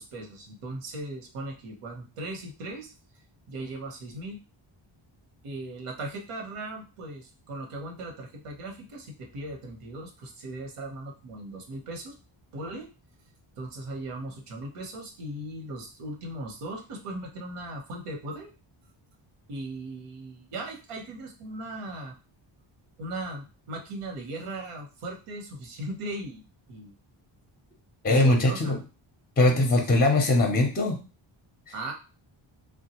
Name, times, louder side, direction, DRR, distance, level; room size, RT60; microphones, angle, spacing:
voice 1, 0.0-2.9 3.5-4.4 5.4-12.1 12.5-12.9 13.6-18.5 19.5-22.1 23.0-26.4 26.7-26.9 28.2-28.8 29.6-30.0 31.7-31.9, right 2 dB, 90° right, 1 dB, 1.0 m, -38 dB
voice 2, 28.0-28.8 29.4-31.0, left 2 dB, 20° left, 3 dB, 0.5 m, -21 dB
3.4 x 2.2 x 2.9 m, 0.32 s
wide cardioid pair, 145°, 50 cm